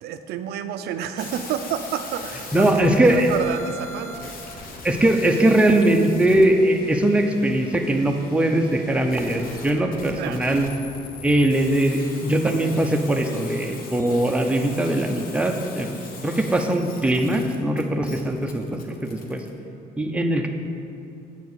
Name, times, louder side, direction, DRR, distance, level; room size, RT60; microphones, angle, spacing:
voice 1, 0.0-4.4 10.2-10.4, right 9 dB, 75° right, 9 dB, 0.4 m, -30 dB
sound 1, 1.2-19.5, left 3 dB, 60° left, 1.1 m, -41 dB
voice 2, 2.5-3.3 4.8-10.7 11.2-15.9 16.2-19.4 20.0-20.5, right 1 dB, 5° right, 3 dB, 0.6 m, -21 dB
8.2 x 4.6 x 6.5 m, 2.6 s
cardioid pair, 110°, 17 cm